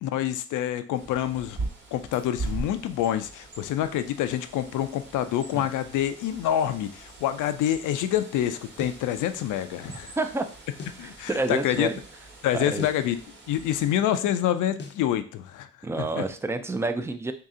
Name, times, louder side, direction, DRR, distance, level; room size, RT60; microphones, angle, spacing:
voice 1, 0.0-1.6 1.9-10.1 11.0-11.9 12.4-13.2 13.5-15.7 16.0-16.2, left 11 dB, 80° left, 10 dB, 0.5 m, -27 dB
Bird, 0.9-14.0, right 3 dB, 40° right, 1.2 m, -41 dB
sound 1, 8.8-9.1 10.8-11.1 12.8-13.1 14.8-15.1, left 4 dB, 35° left, 0.6 m, -40 dB
voice 2, 10.2-10.5 11.0-12.0 12.5-12.9 15.8-17.3, right 3 dB, 10° right, 8 dB, 0.4 m, -29 dB
3.1 x 2.8 x 3.6 m, 0.40 s
cardioid pair, 90°, 30 cm